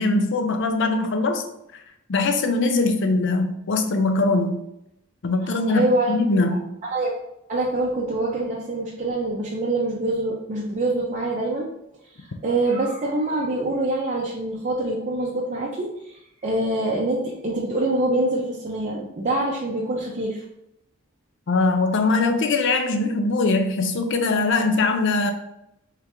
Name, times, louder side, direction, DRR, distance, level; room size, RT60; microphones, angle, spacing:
voice 1, 0.0-1.4 2.1-4.6 5.2-6.7 21.5-25.3, left 3 dB, 60° left, 6 dB, 0.5 m, -21 dB
voice 2, 5.7-6.2 6.9-7.1 7.5-11.7 12.2-20.4, right 2 dB, 35° right, -4 dB, 0.5 m, -25 dB
3.7 x 3.3 x 2.9 m, 0.80 s
head